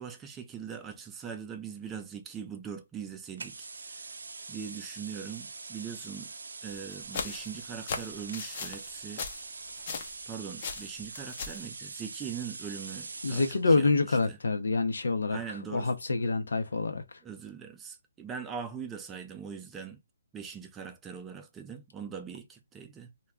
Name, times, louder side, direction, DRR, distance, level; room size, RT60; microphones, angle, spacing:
voice 1, 0.0-4.0 4.5-6.3 6.6-9.2 10.3-14.4 15.3-15.9 17.2-20.0 20.3-23.1, right 7 dB, 10° right, 0.4 m, -41 dB
sound 1, 3.4-13.6, right 4 dB, 80° right, 0.4 m, -43 dB
sound 2, 6.7-10.3 10.6-11.7, left 5 dB, 40° left, 0.5 m, -38 dB
voice 2, 13.2-15.4 15.7-17.0, left 3 dB, 85° left, 0.6 m, -26 dB
2.2 x 2.2 x 3.5 m
hypercardioid pair, 160°, 0 cm